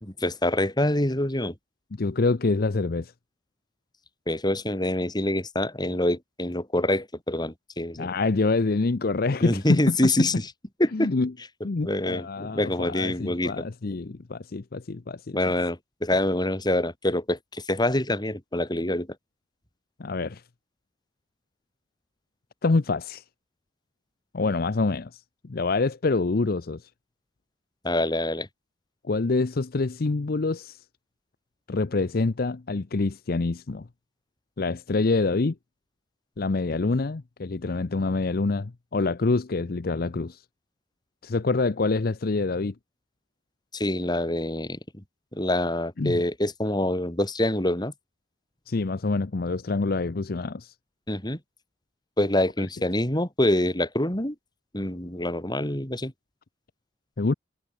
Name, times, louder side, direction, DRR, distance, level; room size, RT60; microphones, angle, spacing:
voice 1, 0.0-1.5 4.3-8.1 9.4-10.3 10.8-11.1 11.8-13.6 15.3-19.1 27.8-28.5 43.7-45.0 45.3-47.9 51.1-51.4 52.2-54.4 54.7-56.1, left 1 dB, 25° left, 3.7 m, -26 dB
voice 2, 1.9-3.1 8.0-10.3 10.9-11.3 11.6-15.4 20.0-20.4 22.6-23.2 24.3-26.9 29.1-30.8 31.7-33.9 34.6-35.5 36.4-40.4 41.2-42.7 46.0-46.2 48.7-50.7 52.6-52.7 57.2-57.3, left 3 dB, 55° left, 0.6 m, -26 dB
head